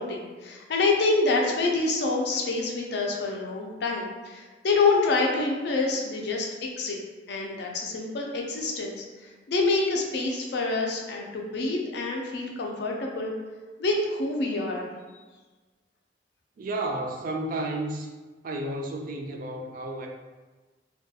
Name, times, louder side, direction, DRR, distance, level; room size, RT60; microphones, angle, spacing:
voice 1, 0.0-7.0 7.3-13.3 13.8-14.9, left 3 dB, 70° left, 0 dB, 0.4 m, -27 dB
voice 2, 16.6-18.1 18.4-20.1, right 2 dB, 50° right, 2 dB, 0.3 m, -32 dB
2.2 x 2.2 x 2.7 m, 1.3 s
head